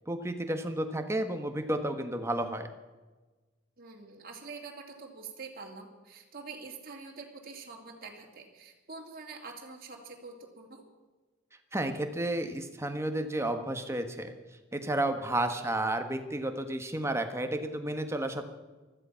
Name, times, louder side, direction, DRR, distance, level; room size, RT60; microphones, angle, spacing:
voice 1, 0.1-2.7 11.7-14.3 14.7-18.5, right 1 dB, 15° right, 6 dB, 1.4 m, -32 dB
voice 2, 3.8-10.8 15.5-15.7, right 4 dB, 50° right, 0 dB, 2.7 m, -46 dB
15.5 x 13.5 x 5.8 m, 1.2 s
head